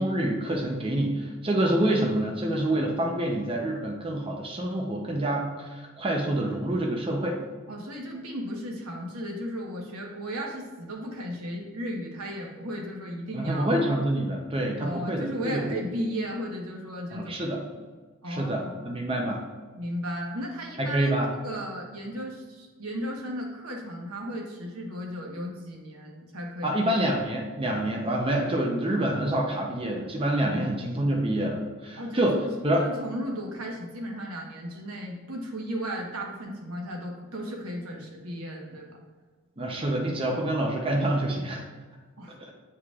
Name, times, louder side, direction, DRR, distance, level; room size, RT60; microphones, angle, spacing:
voice 1, 0.0-7.4 13.3-15.8 17.1-17.6 18.3-19.4 20.8-21.3 26.6-32.9 39.6-41.6 42.4-42.5, right 1 dB, 25° right, 0 dB, 0.6 m, -27 dB
voice 2, 7.7-13.8 14.8-17.3 18.2-18.8 19.8-21.1 21.4-26.7 30.5-30.7 31.9-39.0 42.2-42.4, equal, 90° right, 0 dB, 1.2 m, -35 dB
8.6 x 4.7 x 2.4 m, 1.4 s
head